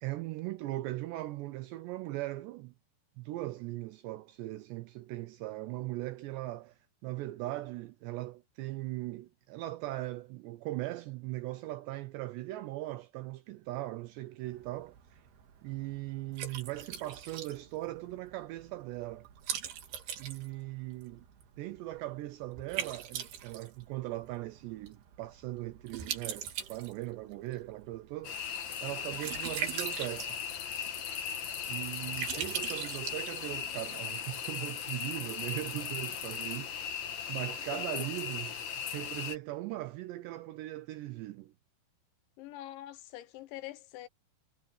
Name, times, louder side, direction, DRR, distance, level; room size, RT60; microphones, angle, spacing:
voice 1, 0.0-2.7 3.2-15.2 15.6-19.3 20.2-21.3 21.6-30.4 31.7-41.5, right 17 dB, 80° right, 2.6 m, -39 dB
Liquid, 14.4-33.9, right 9 dB, 60° right, 3.8 m, -42 dB
sound 1, 28.2-39.4, left 8 dB, 60° left, 2.0 m, -38 dB
voice 2, 37.7-38.1 42.4-44.1, left 14 dB, 75° left, 3.0 m, -44 dB
omnidirectional pair, 5.7 m